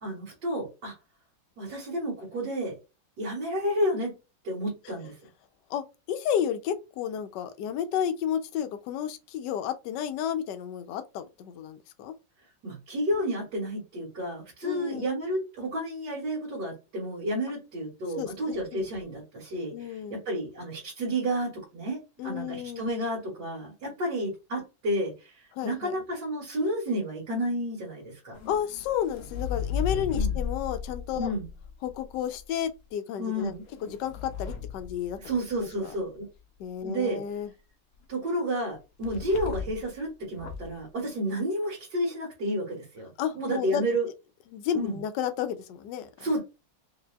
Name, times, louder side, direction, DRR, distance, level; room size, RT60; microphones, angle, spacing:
voice 1, 0.0-0.9 1.6-2.8 3.2-4.2 4.4-5.2 12.6-28.4 30.1-30.4 31.2-31.5 33.2-33.6 35.2-36.3 36.8-37.2 38.1-44.1 44.7-45.0 46.2-46.4, equal, 65° right, 2.1 m, -31 dB
voice 2, 5.7-12.1 14.6-15.1 18.2-18.9 19.7-20.2 22.2-22.9 25.5-25.9 28.5-31.3 31.8-33.5 33.8-35.2 35.6-35.9 36.6-37.5 43.2-43.8 44.5-46.3, left 9 dB, 75° left, 1.2 m, -32 dB
sound 1, 28.3-32.4 33.4-35.7 39.0-39.9 40.3-40.8, left 7 dB, 60° left, 0.8 m, -35 dB
5.0 x 2.6 x 2.3 m
omnidirectional pair, 2.0 m